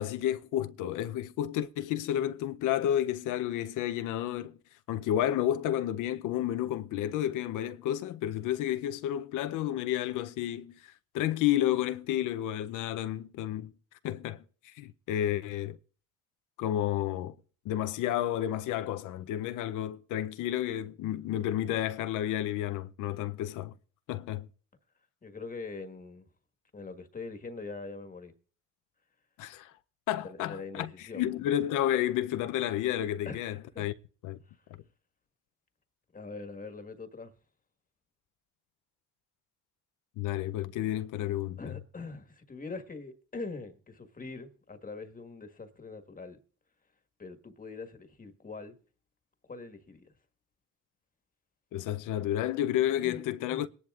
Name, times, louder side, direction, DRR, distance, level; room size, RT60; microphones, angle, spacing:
voice 1, 0.0-4.6 4.9-13.7 14.0-15.8 16.6-17.3 17.7-23.7 24.1-24.5 29.4-29.7 30.1-33.9 34.2-34.4 40.2-41.6 51.7-53.7, left 12 dB, 85° left, 0.6 m, -31 dB
voice 2, 25.2-26.2 26.7-28.3 30.2-31.3 33.2-33.8 34.5-34.6 36.1-37.3 41.6-46.4 47.2-48.8 49.4-50.1 53.0-53.2 53.5-53.6, left 3 dB, 30° left, 1.4 m, -43 dB
22.0 x 10.5 x 2.4 m
cardioid pair, 90°, 30 cm